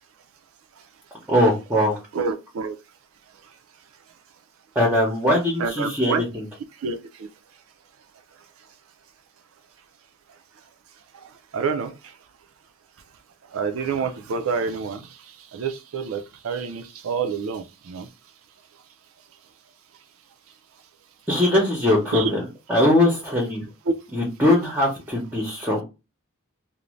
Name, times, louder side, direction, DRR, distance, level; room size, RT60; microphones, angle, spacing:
voice 1, 1.3-2.0 4.7-6.5 21.3-22.4 22.7-23.7 24.1-25.8, left 1 dB, 10° right, 0.7 m, -21 dB
voice 2, 2.1-2.7 5.6-6.2 6.8-7.0 11.5-11.9 13.5-15.0 15.5-18.1 22.1-22.3, right 5 dB, 70° right, 0.4 m, -27 dB
2.5 x 2.1 x 3.0 m
head